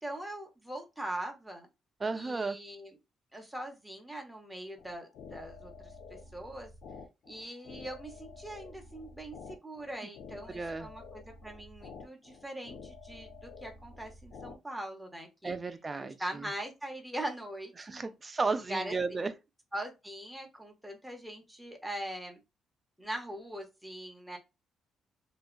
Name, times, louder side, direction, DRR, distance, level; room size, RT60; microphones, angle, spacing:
voice 1, 0.0-1.7 2.1-3.0 3.3-6.7 7.3-15.6 16.0-18.1 18.7-19.3 19.7-22.4 23.0-24.4, right 1 dB, 5° right, 0.8 m, -41 dB
voice 2, 2.0-2.6 10.5-10.9 15.4-16.5 17.8-19.3, right 4 dB, 30° right, 0.4 m, -34 dB
sound 1, 4.8-14.6, left 4 dB, 75° left, 0.5 m, -49 dB
2.7 x 2.2 x 2.4 m
cardioid pair, 90°, 0 cm